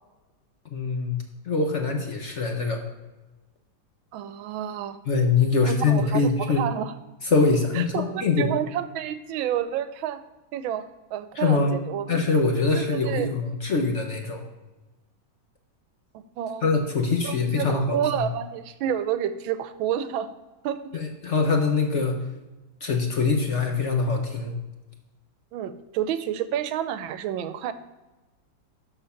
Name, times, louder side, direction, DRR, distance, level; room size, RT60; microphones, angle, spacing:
voice 1, 0.7-1.2 1.5-2.8 5.1-6.7 7.3-8.5 11.4-11.8 12.1-14.4 16.6-18.3 20.9-22.2 22.8-24.5, left 4 dB, 50° left, 3 dB, 1.0 m, -23 dB
voice 2, 4.1-5.0 5.6-6.9 7.7-10.2 10.5-10.8 11.1-12.3 12.7-13.4 16.1-16.7 17.2-20.3 20.6-20.8 25.5-27.7, right 10 dB, 90° right, 12 dB, 1.4 m, -29 dB
12.5 x 4.5 x 5.7 m, 1.1 s
omnidirectional pair, 2.1 m